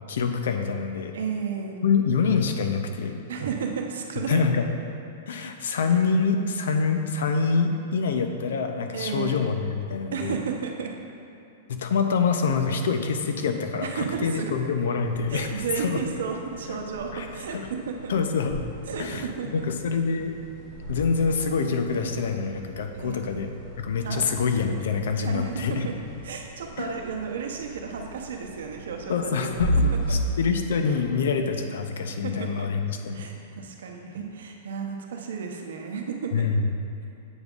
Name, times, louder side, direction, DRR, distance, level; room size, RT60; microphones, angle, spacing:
voice 1, 0.1-1.1 1.8-3.1 4.2-4.7 5.3-10.4 11.7-16.0 16.7-16.8 17.1-17.3 18.1-18.6 19.0-19.2 19.5-20.3 20.9-23.5 23.8-25.9 26.8-27.0 29.1-33.2 36.3-36.7, left 5 dB, 75° left, 6 dB, 0.5 m, -26 dB
voice 2, 1.1-1.8 3.3-4.4 8.9-9.4 10.1-10.9 13.8-14.5 15.3-18.1 18.9-19.7 22.9-23.4 24.0-24.3 25.2-25.9 26.2-29.7 30.1-30.2 32.2-32.7 33.1-36.5, right 6 dB, 85° right, 2 dB, 0.7 m, -33 dB
sound 1, 14.9-30.9, right 1 dB, 15° right, 1.3 m, -35 dB
7.9 x 5.2 x 2.4 m, 2.8 s
supercardioid pair, 175°, 0 cm